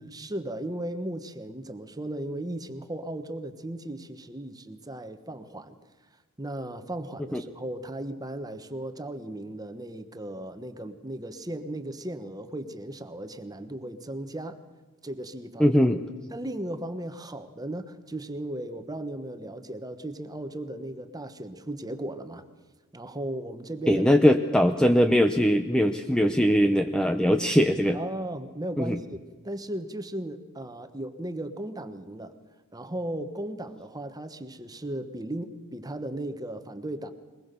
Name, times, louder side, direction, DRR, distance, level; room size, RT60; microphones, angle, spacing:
voice 1, 0.0-5.8 6.4-14.6 15.0-15.8 16.3-22.4 22.9-24.0 27.9-32.3 32.7-37.1, right 1 dB, 15° right, 10 dB, 1.2 m, -36 dB
voice 2, 15.6-16.0 23.9-28.0 28.8-29.0, equal, 5° left, 6 dB, 0.7 m, -21 dB
22.0 x 20.5 x 6.9 m, 1.3 s
head